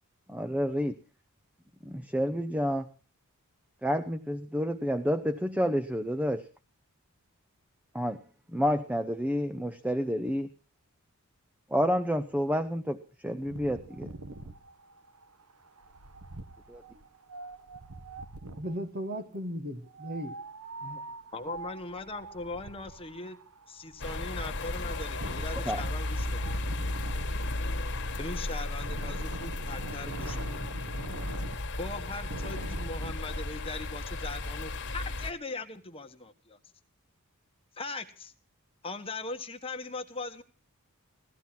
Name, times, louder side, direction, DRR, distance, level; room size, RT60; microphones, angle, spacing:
voice 1, 0.3-0.9 1.8-2.9 3.8-6.4 7.9-8.2 8.5-10.5 11.7-13.8 16.7-16.8 25.7-25.8, equal, 5° right, 0.7 m, -29 dB
Wind, 13.4-18.8 19.9-33.1, right 2 dB, 85° right, 1.2 m, -44 dB
voice 2, 18.5-20.4 20.8-21.0, equal, 45° right, 1.5 m, -37 dB
voice 3, 21.3-23.4 23.7-26.6 28.2-30.7 31.8-36.6 37.8-38.3 38.8-40.4, left 3 dB, 25° left, 1.3 m, -40 dB
sound 1, 24.0-35.3, left 2 dB, 55° left, 1.6 m, -34 dB
17.0 x 14.0 x 5.9 m
head